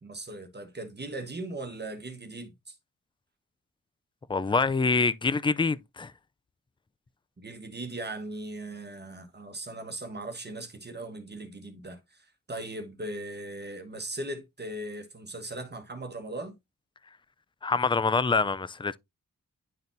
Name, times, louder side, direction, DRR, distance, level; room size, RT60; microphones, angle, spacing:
voice 1, 0.0-2.7 7.4-16.6, right 2 dB, 30° right, 1.3 m, -39 dB
voice 2, 4.3-6.1 17.6-19.0, left 4 dB, 15° left, 0.3 m, -25 dB
10.5 x 4.0 x 2.6 m
wide cardioid pair, 95°, 33 cm